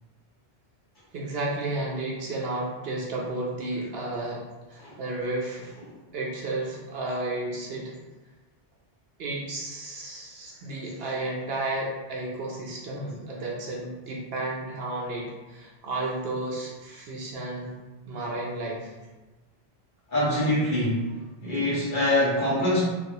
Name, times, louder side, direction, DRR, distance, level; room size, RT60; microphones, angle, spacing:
voice 1, 1.1-5.8 6.1-8.0 9.2-17.7 18.1-18.9, right 2 dB, 70° right, -2 dB, 0.8 m, -32 dB
voice 2, 20.1-21.0 21.4-22.8, left 1 dB, 45° left, -9 dB, 1.3 m, -24 dB
3.2 x 2.3 x 2.8 m, 1.2 s
omnidirectional pair, 1.1 m